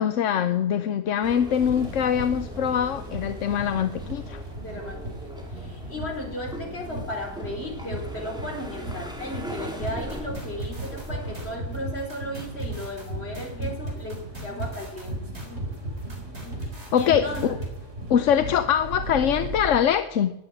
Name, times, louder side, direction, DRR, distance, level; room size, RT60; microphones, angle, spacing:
voice 1, 0.0-4.4 16.9-17.5 18.1-20.3, left 9 dB, 85° left, 10 dB, 1.1 m, -23 dB
sound 1, 1.2-11.6, equal, 5° right, 2.2 m, -40 dB
sound 2, 1.5-19.8, right 2 dB, 85° right, 3.4 m, -38 dB
voice 2, 4.6-15.2 15.5-15.7 16.9-17.6, left 1 dB, 60° left, 1 dB, 4.3 m, -35 dB
sound 3, 9.8-17.7, right 1 dB, 60° right, 4.5 m, -35 dB
13.0 x 9.9 x 9.8 m, 0.91 s
omnidirectional pair, 1.2 m